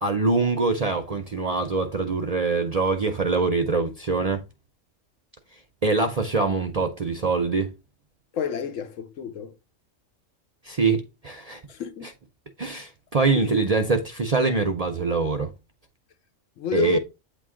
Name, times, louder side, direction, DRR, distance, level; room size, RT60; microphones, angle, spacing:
voice 1, 0.0-4.4 5.8-7.7 10.6-11.6 12.6-15.5 16.7-17.0, right 3 dB, 45° right, 0.5 m, -24 dB
voice 2, 8.3-9.5 11.7-12.1 13.4-13.5 16.6-17.0, left 8 dB, 80° left, 1.1 m, -29 dB
8.5 x 3.0 x 3.6 m
omnidirectional pair, 1.3 m